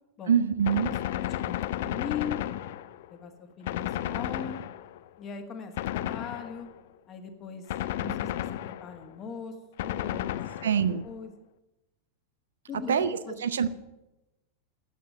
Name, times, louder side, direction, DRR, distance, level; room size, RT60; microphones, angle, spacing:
voice 1, 0.3-0.9 10.6-11.0 12.9-13.7, right 7 dB, 65° right, 13 dB, 0.7 m, -25 dB
Gunshot gunfire, 0.7-3.2 3.7-5.1 5.8-6.8 7.7-9.1 9.8-11.0, left 13 dB, 55° left, 0.5 m, -33 dB
voice 2, 1.0-2.4 3.1-4.6 5.2-6.7 7.1-7.7 8.0-10.7 11.0-11.3 12.7-13.3, left 6 dB, 30° left, 5 dB, 1.6 m, -40 dB
9.3 x 8.5 x 8.8 m, 1.0 s
figure-of-eight pair, 90°, 0 cm